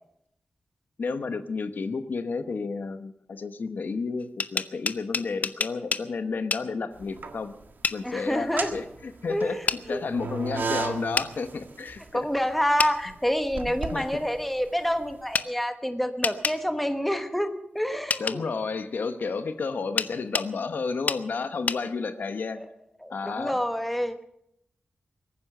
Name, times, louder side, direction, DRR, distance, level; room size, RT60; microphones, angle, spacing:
voice 1, 1.0-7.5 7.9-12.3 13.9-14.1 18.2-22.6 23.1-23.6, left 4 dB, 65° left, 10 dB, 1.0 m, -31 dB
sound 1, 4.2-6.1 6.5-6.7 7.8-8.0 9.7-9.8 11.2-11.3 12.8-12.9 15.3-15.5 16.2-16.6 18.1-18.4 20.0-20.5 21.1-21.2 21.7-21.8, left 4 dB, 50° left, 0.6 m, -27 dB
sound 2, 7.0-7.7 8.3-15.2, right 4 dB, 70° right, 1.6 m, -35 dB
voice 2, 8.0-8.7 9.3-10.0 12.1-18.4 22.5-22.7 23.0-24.2, equal, 5° left, 7 dB, 1.2 m, -28 dB
22.0 x 9.7 x 6.6 m, 0.78 s
wide cardioid pair, 150°, 3 cm